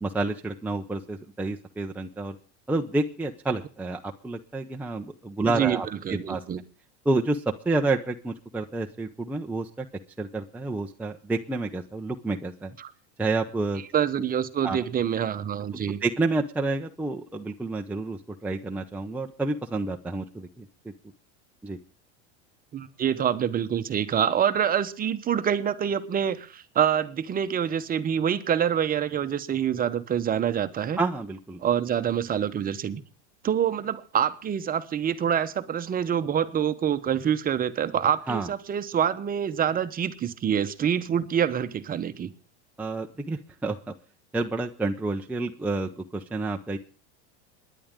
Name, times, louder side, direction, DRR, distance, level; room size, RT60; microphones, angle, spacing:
voice 1, 0.0-2.4 2.7-6.4 7.0-9.9 10.2-12.7 13.2-13.8 14.6-14.8 16.0-20.9 21.6-21.8 31.0-31.6 38.3-38.5 42.8-43.8 44.3-46.8, right 2 dB, 5° right, 0.6 m, -29 dB
voice 2, 5.5-6.6 12.8-12.9 13.9-16.0 22.7-31.0 31.6-33.0 33.4-42.3, right 8 dB, 25° right, 1.0 m, -26 dB
26.5 x 10.5 x 3.7 m
supercardioid pair, 130°, 35 cm